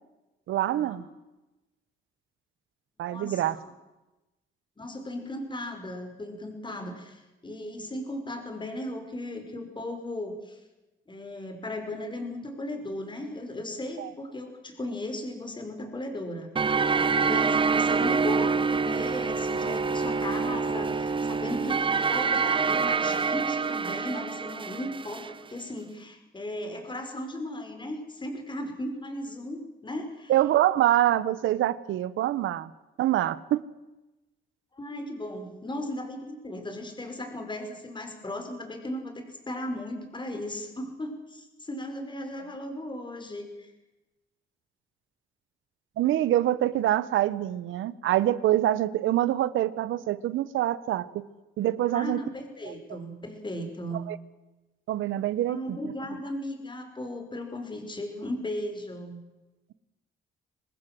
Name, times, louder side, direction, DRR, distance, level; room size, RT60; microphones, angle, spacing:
voice 1, 0.5-1.1 3.0-3.6 14.0-14.1 30.3-32.7 33.0-33.7 46.0-51.3 51.6-52.2 52.7-52.8 54.1-54.2 54.9-55.8, right 13 dB, 80° right, 17 dB, 1.1 m, -25 dB
voice 2, 3.1-3.7 4.8-10.6 11.1-16.5 17.0-30.3 34.7-43.7 51.9-54.1 55.5-59.2, left 1 dB, 25° left, 5 dB, 5.5 m, -36 dB
sound 1, 16.6-25.3, right 5 dB, 25° right, 0.9 m, -26 dB
25.5 x 19.5 x 7.8 m, 1.0 s
cardioid pair, 90°, 20 cm